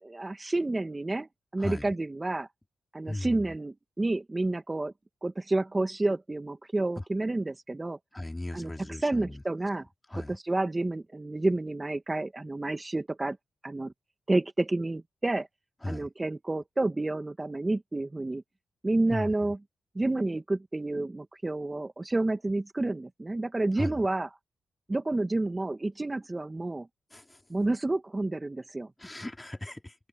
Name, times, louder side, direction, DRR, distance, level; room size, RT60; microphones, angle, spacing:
voice 1, 0.0-2.5 2.9-4.9 5.2-8.0 8.5-8.7 9.0-9.9 10.1-13.4 13.6-13.9 14.3-15.5 15.9-18.4 18.8-19.6 20.0-24.3 24.9-26.9 27.5-28.9, right 2 dB, 25° right, 2.0 m, -30 dB
voice 2, 8.1-9.4 10.1-10.4 15.8-16.1 19.1-19.3 23.8-24.0 27.1-27.2 29.0-29.9, left 1 dB, 15° left, 3.2 m, -36 dB
cardioid pair, 60°, 0 cm